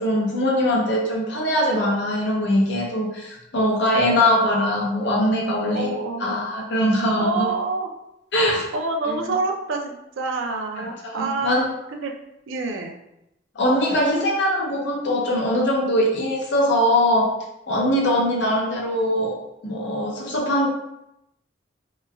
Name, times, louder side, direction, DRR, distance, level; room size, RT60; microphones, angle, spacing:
voice 1, 0.0-5.9 6.2-7.5 8.3-8.6 9.1-9.2 10.8-11.7 13.6-17.3 17.7-20.7, left 1 dB, 65° left, -1 dB, 0.6 m, -22 dB
voice 2, 5.6-6.4 7.2-7.9 8.7-11.6 11.9-12.1 12.5-12.9, right 3 dB, 85° right, 3 dB, 0.4 m, -27 dB
3.0 x 2.2 x 2.2 m, 0.86 s
head